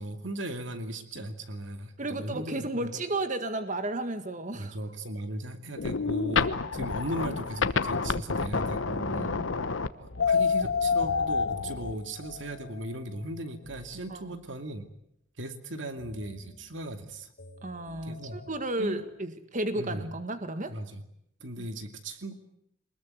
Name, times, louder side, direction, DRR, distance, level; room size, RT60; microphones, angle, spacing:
voice 1, 0.0-2.9 4.5-9.3 10.0-14.8 15.4-17.3 18.0-18.4 18.8-19.0 19.7-20.0 20.7-21.0 21.4-22.3, right 1 dB, 70° right, 7 dB, 2.5 m, -37 dB
voice 2, 2.0-4.8 9.1-9.7 14.1-14.4 17.6-20.7 21.6-21.7, right 2 dB, 40° right, 9 dB, 1.8 m, -33 dB
sound 1, 5.8-11.9, left 5 dB, 85° left, 1.1 m, -28 dB
sound 2, 11.8-14.8 16.0-19.3, left 3 dB, 55° left, 3.7 m, -52 dB
23.5 x 21.0 x 9.7 m, 0.74 s
head